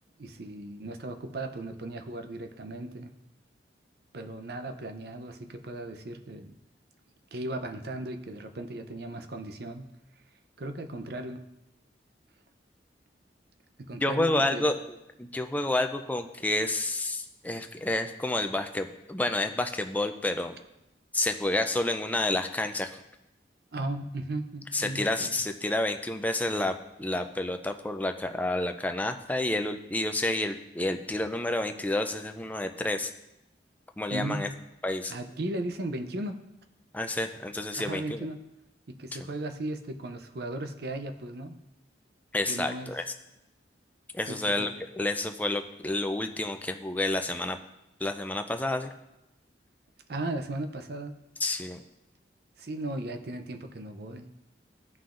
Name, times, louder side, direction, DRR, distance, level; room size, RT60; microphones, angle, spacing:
voice 1, 0.2-3.1 4.1-6.5 7.3-9.9 10.6-11.4 13.8-14.7 23.7-25.3 34.1-34.5 35.1-36.4 37.8-38.4 38.9-41.6 42.5-42.9 44.3-44.7 50.1-51.2 52.6-54.3, right 2 dB, 60° right, 7 dB, 0.6 m, -36 dB
voice 2, 13.9-14.8 15.2-20.6 21.1-23.0 24.7-26.7 27.0-33.1 34.0-34.5 34.8-35.1 36.9-38.3 42.3-43.0 44.1-47.6 48.0-48.9 51.4-51.8, left 2 dB, 10° left, 6 dB, 0.4 m, -29 dB
14.5 x 5.7 x 2.5 m, 0.91 s
head